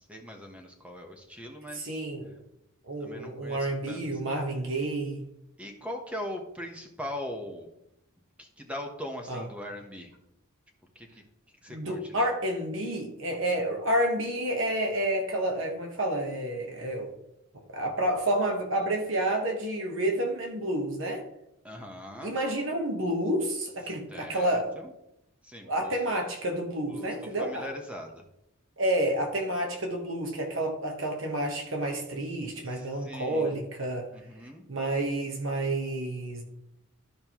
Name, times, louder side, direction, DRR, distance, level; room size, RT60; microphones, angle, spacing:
voice 1, 0.1-1.9 3.0-4.0 5.6-7.7 8.4-10.1 10.9-11.2 11.6-12.3 21.6-22.3 24.1-24.9 25.4-25.9 26.9-27.1 27.4-28.2 32.7-33.6 34.1-34.6, left 1 dB, 5° right, 3 dB, 1.1 m, -40 dB
voice 2, 1.7-2.3 2.9-5.3 9.3-9.5 11.7-17.1 17.7-21.2 22.2-24.7 25.6-27.7 28.8-34.1 34.7-36.4, right 1 dB, 65° right, 2 dB, 1.2 m, -29 dB
13.0 x 5.3 x 3.0 m, 0.81 s
head